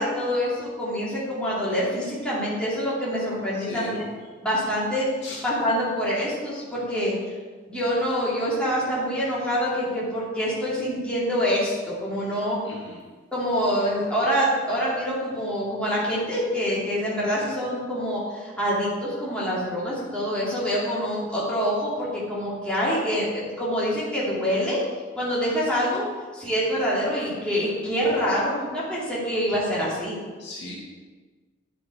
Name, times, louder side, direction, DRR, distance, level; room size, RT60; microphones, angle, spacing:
voice 1, 0.0-4.0 4.4-5.1 5.4-7.1 7.7-12.6 13.3-24.8 25.1-26.0 26.3-30.2, equal, 5° left, -9 dB, 2.5 m, -26 dB
voice 2, 3.5-4.1 5.2-5.4 12.6-13.0 30.4-30.8, left 2 dB, 65° left, -5 dB, 2.2 m, -38 dB
9.9 x 5.8 x 4.6 m, 1.4 s
head